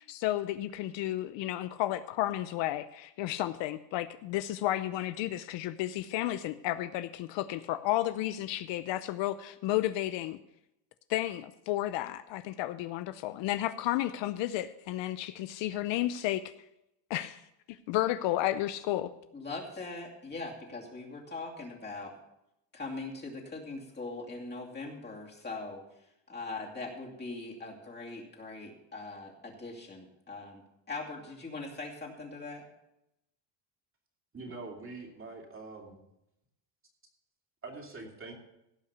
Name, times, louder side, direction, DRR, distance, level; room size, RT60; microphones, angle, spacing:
voice 1, 0.0-10.4 11.1-16.4 17.1-17.4 17.7-19.1, left 14 dB, 65° left, 12 dB, 0.7 m, -32 dB
voice 2, 19.3-22.1 22.7-25.8 26.3-30.6 30.9-32.6, left 3 dB, 20° left, -1 dB, 2.7 m, -41 dB
voice 3, 34.3-36.0 37.6-38.3, right 3 dB, 25° right, 1 dB, 2.7 m, -44 dB
16.5 x 5.7 x 6.8 m, 0.86 s
cardioid pair, 130°, 48 cm